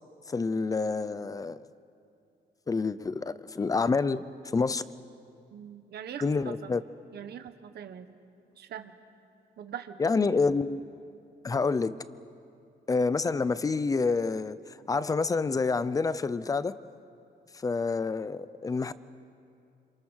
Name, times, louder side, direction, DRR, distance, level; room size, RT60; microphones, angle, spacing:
voice 1, 0.3-1.6 2.7-4.2 4.5-4.8 6.2-6.8 10.0-10.8 11.4-11.9 12.9-16.7 17.5-18.9, left 4 dB, 20° left, 16 dB, 0.6 m, -28 dB
voice 2, 5.5-6.7 7.1-8.2 8.6-8.9 9.6-10.0, right 9 dB, 60° right, 9 dB, 1.4 m, -42 dB
28.5 x 27.0 x 6.5 m, 2.5 s
cardioid pair, 165°, 18 cm